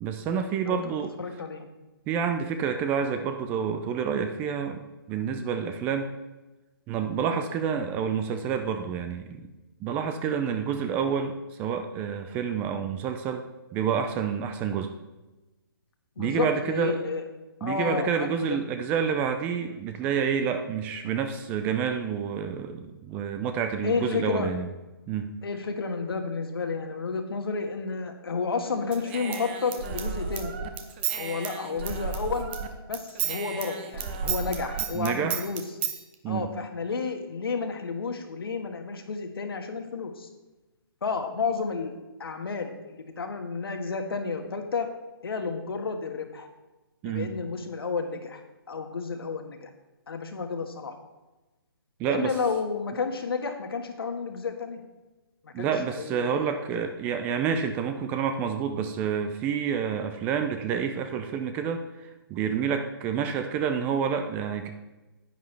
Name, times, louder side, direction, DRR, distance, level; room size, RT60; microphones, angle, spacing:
voice 1, 0.0-1.1 2.1-6.1 6.9-9.5 9.8-13.5 13.7-14.9 16.2-17.0 17.6-24.7 25.1-25.3 34.9-35.4 36.2-36.5 47.0-47.4 52.0-52.3 55.5-64.7, right 7 dB, 15° right, 7 dB, 0.4 m, -28 dB
voice 2, 1.2-1.7 16.2-17.2 17.6-18.6 23.8-24.5 25.4-30.6 31.2-32.5 32.9-35.6 36.3-40.3 41.0-44.9 45.2-46.5 47.0-48.4 48.7-49.7 50.1-50.9 52.1-54.8 55.4-56.8, left 5 dB, 75° left, 6 dB, 1.5 m, -31 dB
Human voice / Scissors, 28.9-32.7 32.9-36.0, right 7 dB, 30° right, 0.8 m, -32 dB
10.5 x 9.2 x 3.3 m, 1.1 s
hypercardioid pair, 150°, 13 cm